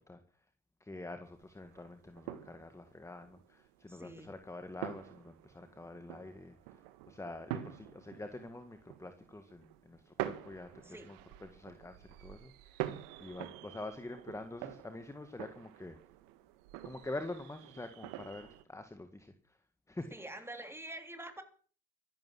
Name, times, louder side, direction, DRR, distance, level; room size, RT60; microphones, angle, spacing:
voice 1, 0.8-16.0 16.8-19.6 19.9-20.1, left 2 dB, 10° left, 8 dB, 1.7 m, -46 dB
sound 1, 1.2-18.6, right 14 dB, 85° right, 1.8 m, -46 dB
voice 2, 3.9-4.3 10.8-11.1 20.1-21.4, right 1 dB, 10° right, 7 dB, 3.6 m, -46 dB
14.0 x 11.5 x 7.7 m, 0.43 s
supercardioid pair, 95°, 32 cm